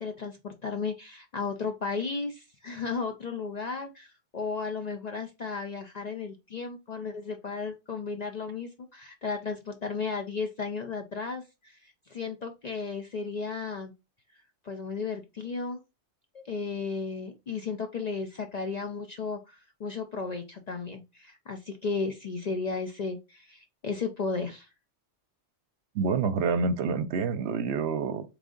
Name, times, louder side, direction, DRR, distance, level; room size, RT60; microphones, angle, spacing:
voice 1, 0.0-13.9 14.6-15.8 16.3-24.7, left 4 dB, 50° left, 0.5 m, -34 dB
voice 2, 25.9-28.2, right 5 dB, 70° right, 0.8 m, -27 dB
3.6 x 3.3 x 3.7 m
omnidirectional pair, 1.2 m